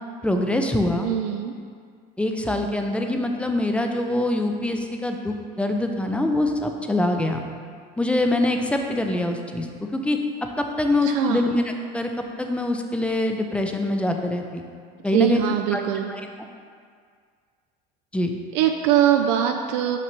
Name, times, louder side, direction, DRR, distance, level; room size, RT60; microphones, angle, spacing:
voice 1, 0.2-1.1 2.2-7.4 8.0-9.7 9.9-10.2 10.6-12.1 12.4-14.7 15.0-15.4 15.7-15.8 16.1-16.2 18.1-18.3, left 1 dB, 5° left, 4 dB, 0.4 m, -24 dB
voice 2, 1.0-1.5 11.0-11.4 15.1-16.1 18.5-20.0, right 10 dB, 75° right, 5 dB, 0.4 m, -22 dB
5.8 x 5.3 x 3.0 m, 2.1 s
supercardioid pair, 115°, 21 cm